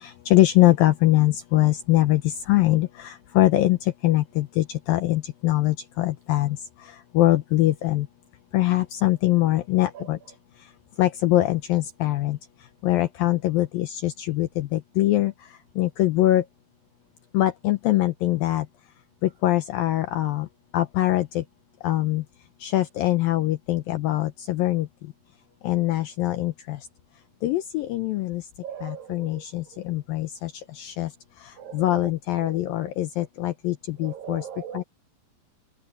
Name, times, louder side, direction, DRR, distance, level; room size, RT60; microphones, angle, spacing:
voice 1, 0.0-3.8 4.0-6.6 7.1-8.1 8.5-10.2 11.0-12.4 12.8-15.3 15.8-16.4 17.3-18.7 19.2-20.5 20.7-21.4 21.8-22.2 22.6-24.9 25.6-26.8 27.4-28.4 28.8-30.5 30.8-31.1 31.7-34.4 34.7-34.8, left 15 dB, 80° left, 2.1 m, -23 dB
voice 2, 28.6-29.4 31.6-32.1 32.4-32.5 34.0-34.8, right 9 dB, 75° right, 2.1 m, -39 dB
omnidirectional pair, 5.1 m